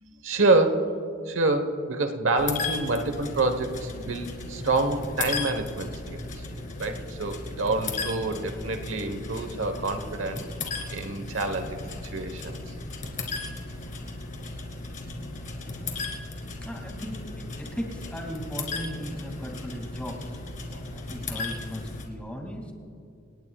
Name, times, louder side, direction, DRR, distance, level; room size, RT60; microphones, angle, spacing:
voice 1, 0.2-1.0 1.3-6.4 6.8-10.4 10.9-12.6 20.7-20.8, right 2 dB, 70° right, 7 dB, 1.2 m, -27 dB
sound 1, 2.4-22.1, left 3 dB, 40° left, 2.2 m, -36 dB
voice 2, 16.6-17.2 17.6-20.4 20.9-22.7, equal, 5° left, 1 dB, 2.3 m, -37 dB
27.5 x 19.0 x 2.4 m, 2.6 s
head